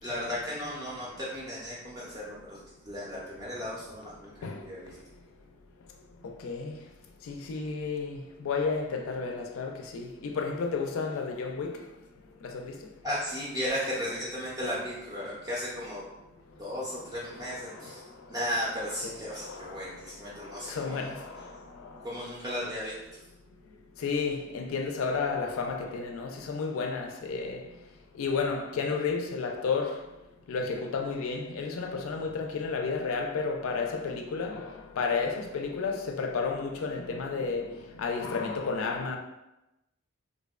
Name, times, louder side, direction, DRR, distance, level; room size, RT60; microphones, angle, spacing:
voice 1, 0.0-2.6 2.8-5.0 13.0-16.0 16.6-18.0 18.3-21.1 22.0-23.2, equal, 15° right, 0.4 m, -35 dB
voice 2, 6.2-6.8 7.3-11.8 12.4-12.7 17.3-17.9 19.0-19.8 20.4-22.0 24.0-27.6 28.2-30.0 30.5-37.7 38.0-39.2, left 4 dB, 80° left, 0.3 m, -32 dB
2.6 x 2.0 x 2.3 m
head